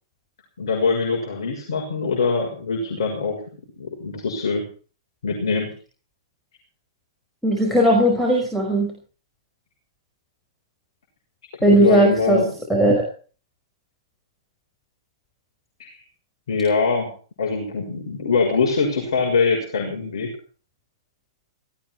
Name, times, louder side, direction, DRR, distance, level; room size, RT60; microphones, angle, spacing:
voice 1, 0.6-3.4 3.8-4.6 5.2-5.7 11.7-12.5 15.8-15.9 16.5-17.1 17.4-20.3, left 4 dB, 70° left, 0 dB, 6.6 m, -23 dB
voice 2, 7.4-9.0 11.6-12.4 12.7-13.1, right 1 dB, ahead, -2 dB, 5.3 m, -17 dB
18.5 x 15.0 x 4.7 m, 0.40 s
hypercardioid pair, 120°, 3 cm